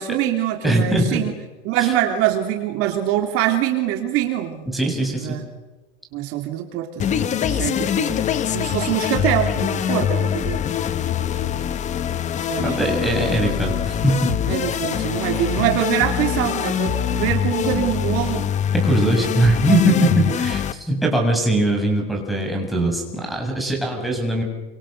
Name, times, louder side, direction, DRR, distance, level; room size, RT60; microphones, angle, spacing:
voice 1, 0.0-1.3 1.6-4.7 5.1-5.4 6.1-8.3 8.5-10.6 12.5-12.9 14.5-18.5, right 12 dB, 40° right, 4 dB, 2.9 m, -24 dB
voice 2, 0.6-1.2 1.8-1.9 4.7-5.3 12.6-14.3 18.7-24.4, right 1 dB, ahead, 0 dB, 7.1 m, -21 dB
sound 1, 7.0-20.7, left 9 dB, 20° left, 1.1 m, -23 dB
28.5 x 27.0 x 6.6 m, 1.2 s
supercardioid pair, 160°, 33 cm